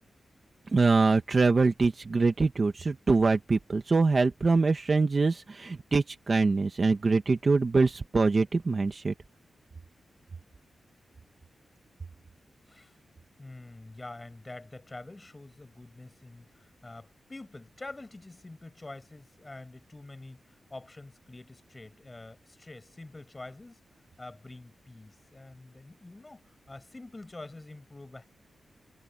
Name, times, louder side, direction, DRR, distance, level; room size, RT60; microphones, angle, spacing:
voice 1, 0.7-9.1, right 4 dB, 30° right, 1.2 m, -24 dB
voice 2, 13.4-23.8 24.2-28.2, left 2 dB, 20° left, 7.1 m, -46 dB
wide cardioid pair, 180°, 0 cm